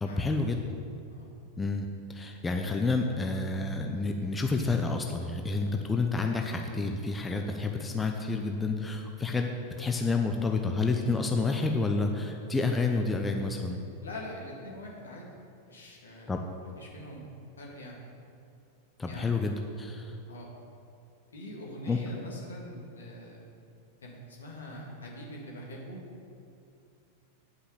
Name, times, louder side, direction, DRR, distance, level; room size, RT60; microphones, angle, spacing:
voice 1, 0.0-0.6 1.6-9.5 9.8-13.8 16.3-16.4 19.0-20.1 21.9-22.0, left 3 dB, 15° left, 3 dB, 0.7 m, -29 dB
voice 2, 14.0-15.3 15.7-16.4 16.8-17.2 17.6-18.0 19.1-19.3 20.3-20.5 21.3-23.5 24.0-26.0, equal, 70° left, -2 dB, 2.2 m, -43 dB
10.0 x 5.7 x 7.3 m, 2.5 s
figure-of-eight pair, 90°, 0 cm